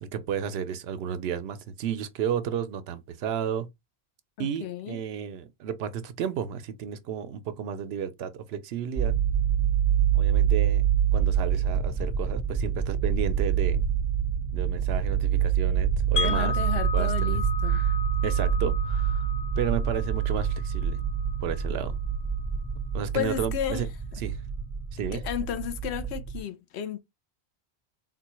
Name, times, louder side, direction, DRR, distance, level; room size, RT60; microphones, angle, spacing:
voice 1, 0.0-3.7 4.4-9.2 10.1-10.9 11.1-13.8 14.5-16.6 16.9-18.0 18.2-19.3 19.6-21.0 21.4-22.0 22.9-23.9 24.2-24.4 24.9-25.2, right 8 dB, 75° right, 0.8 m, -32 dB
voice 2, 4.4-5.0 16.2-17.8 23.1-23.8 25.1-27.0, left 10 dB, 90° left, 0.9 m, -33 dB
sound 1, 9.0-26.4, right 8 dB, 20° right, 0.8 m, -26 dB
Wind chime, 16.2-22.1, left 6 dB, 55° left, 0.6 m, -35 dB
3.8 x 2.2 x 2.9 m
omnidirectional pair, 1.1 m